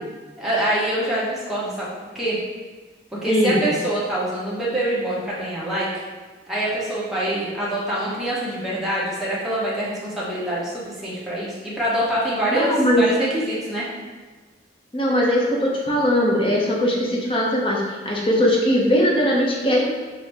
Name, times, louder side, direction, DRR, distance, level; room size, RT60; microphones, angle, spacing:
voice 1, 0.4-1.9 2.1-2.4 3.2-5.9 6.5-13.9, right 1 dB, ahead, -9 dB, 0.8 m, -25 dB
voice 2, 3.3-3.7 12.5-13.0 14.9-19.9, equal, 30° left, -2 dB, 0.6 m, -20 dB
5.5 x 2.0 x 3.3 m, 1.3 s
head